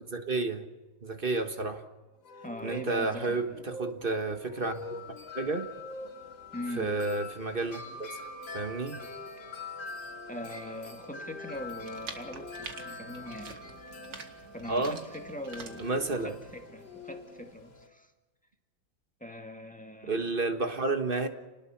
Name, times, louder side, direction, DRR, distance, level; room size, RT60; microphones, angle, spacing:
voice 1, 0.1-0.7 1.0-1.8 2.6-4.8 5.3-5.7 6.8-8.2 8.5-9.0 14.7-15.0 15.8-16.3 20.1-21.3, right 3 dB, 30° right, 1.5 m, -31 dB
sound 1, 2.2-14.2 15.3-17.5, left 2 dB, 75° left, 3.4 m, -48 dB
voice 2, 2.4-3.6 6.5-7.0 10.3-13.5 14.5-18.1 19.2-20.3, left 1 dB, 5° left, 1.9 m, -42 dB
Wind chime, 4.5-17.9, left 3 dB, 55° left, 3.3 m, -45 dB
sound 2, 11.5-16.6, right 4 dB, 60° right, 2.5 m, -47 dB
29.5 x 20.0 x 5.9 m
omnidirectional pair, 2.1 m